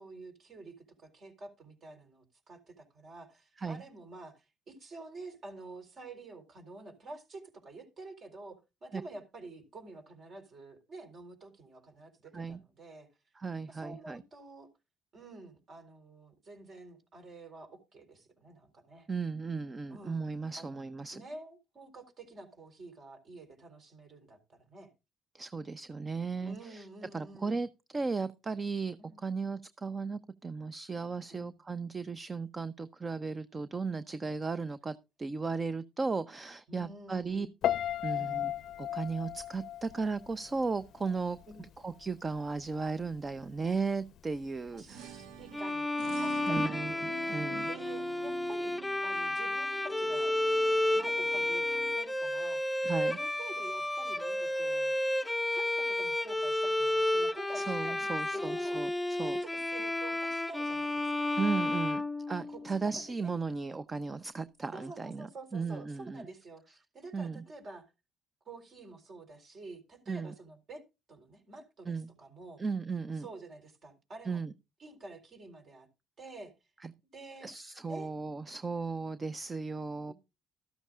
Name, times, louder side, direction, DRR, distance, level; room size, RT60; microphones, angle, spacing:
voice 1, 0.0-13.1 13.7-14.7 15.1-19.1 19.9-20.3 20.6-20.8 21.1-24.9 26.4-27.6 29.0-29.4 31.3-31.6 36.7-37.5 38.1-38.6 41.5-41.6 44.7-45.9 46.2-46.8 47.7-48.8 49.0-50.4 50.9-52.6 53.1-55.0 55.5-58.8 59.2-61.4 62.5-63.3 64.7-67.9 68.4-70.8 71.1-72.6 73.1-74.4 74.8-75.9 76.2-76.5 77.1-77.5 77.9-78.1 80.1-80.2, right 2 dB, 50° right, 4.1 m, -49 dB
voice 2, 13.4-14.2 19.1-21.2 25.3-26.9 27.1-27.7 27.9-37.5 38.0-38.5 38.8-41.4 41.8-45.1 46.5-47.7 52.8-53.2 57.5-58.9 59.2-59.4 61.4-66.3 67.1-67.4 70.1-70.3 71.9-72.1 72.6-73.3 74.3-74.5 76.8-76.9 77.4-80.1, right 4 dB, 30° right, 0.7 m, -36 dB
Piano, 37.6-40.7 41.0-41.4, left 11 dB, 65° left, 0.5 m, -34 dB
sound 1, 44.6-52.0, right 9 dB, 80° right, 0.9 m, -48 dB
Bowed string instrument, 45.5-62.8, left 1 dB, 5° left, 0.7 m, -31 dB
13.5 x 12.5 x 2.5 m
supercardioid pair, 70°, 0 cm